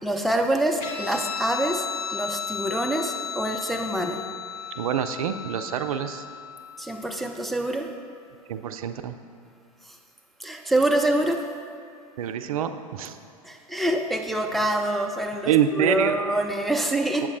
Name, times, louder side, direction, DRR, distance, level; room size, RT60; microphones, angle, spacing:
voice 1, 0.0-4.2 6.8-7.9 10.4-11.4 13.4-17.3, right 1 dB, ahead, 3 dB, 0.4 m, -26 dB
Guitar, 0.8-7.7, left 7 dB, 50° left, 1.1 m, -35 dB
voice 2, 4.8-6.2 8.5-9.2 12.2-13.2 15.4-16.1 17.2-17.3, right 9 dB, 70° right, 9 dB, 0.4 m, -26 dB
8.2 x 7.3 x 2.6 m, 2.4 s
figure-of-eight pair, 90°, 19 cm